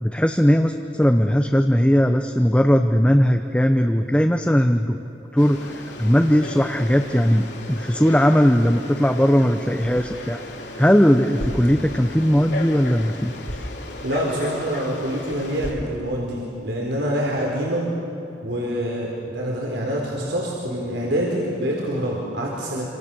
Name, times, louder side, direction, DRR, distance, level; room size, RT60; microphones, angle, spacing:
voice 1, 0.0-5.0 5.3-10.4 10.8-13.3 13.6-13.7, equal, 5° left, 5 dB, 0.7 m, -18 dB
Frog, 5.4-15.7, left 1 dB, 75° left, 3.7 m, -35 dB
voice 2, 14.0-17.9 18.4-22.9, equal, 80° right, -2 dB, 4.2 m, -26 dB
27.5 x 26.5 x 7.1 m, 3.0 s
head